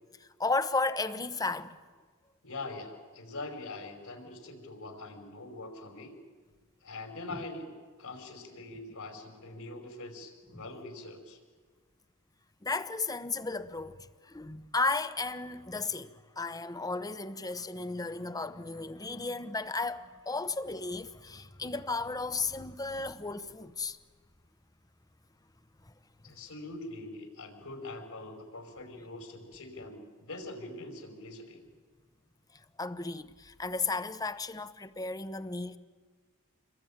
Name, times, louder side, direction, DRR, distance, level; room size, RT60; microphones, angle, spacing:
voice 1, 0.2-1.8 7.3-7.4 10.5-10.6 12.6-14.0 14.2-24.0 32.8-35.8, left 3 dB, 15° left, 0.9 m, -34 dB
voice 2, 2.4-6.2 6.8-11.4 26.2-31.6, left 2 dB, 75° left, 5.3 m, -43 dB
28.5 x 22.0 x 8.9 m
head